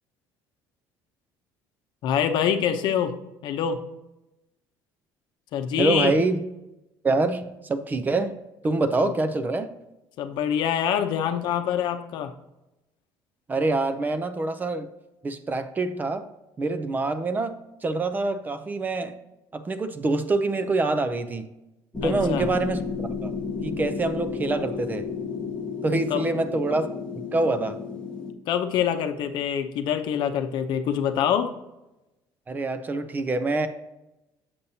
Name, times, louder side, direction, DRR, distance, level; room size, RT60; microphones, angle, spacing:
voice 1, 2.0-3.1 3.4-3.8 5.5-6.1 10.2-12.3 22.0-22.5 26.1-26.2 28.5-31.5, left 8 dB, 60° left, 7 dB, 0.7 m, -25 dB
voice 2, 5.8-6.4 7.0-8.4 8.6-9.7 13.5-14.9 15.2-16.2 16.6-17.6 17.8-19.2 19.5-21.5 22.0-23.3 23.6-25.1 25.8-26.9 27.3-27.8 32.5-33.7, right 3 dB, 20° right, 10 dB, 0.5 m, -25 dB
sound 1, 21.9-28.3, left 5 dB, 15° left, 1.0 m, -32 dB
7.1 x 6.8 x 2.8 m, 0.95 s
cardioid pair, 130°, 9 cm